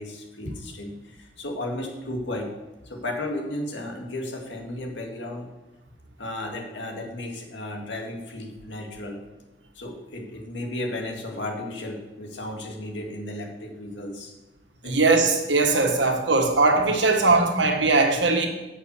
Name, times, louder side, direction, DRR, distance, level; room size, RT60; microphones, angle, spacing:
voice 1, 0.0-2.5 2.8-5.5 6.2-9.2 9.8-14.3 14.8-15.0, left 1 dB, 85° left, 1 dB, 2.1 m, -34 dB
voice 2, 14.8-18.5, right 3 dB, 85° right, 3 dB, 1.6 m, -20 dB
8.6 x 6.3 x 8.1 m, 1.1 s
head